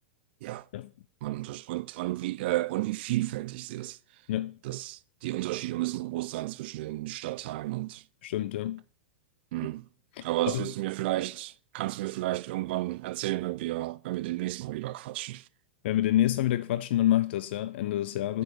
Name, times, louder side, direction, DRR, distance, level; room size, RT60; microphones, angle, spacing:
voice 1, 1.2-4.0 4.6-8.0 9.5-9.8 10.2-15.4, right 17 dB, 55° right, 0.4 m, -32 dB
voice 2, 8.2-8.8 10.1-10.7 15.8-18.4, left 13 dB, 60° left, 0.4 m, -27 dB
6.6 x 4.7 x 6.5 m
hypercardioid pair, 105°, 7 cm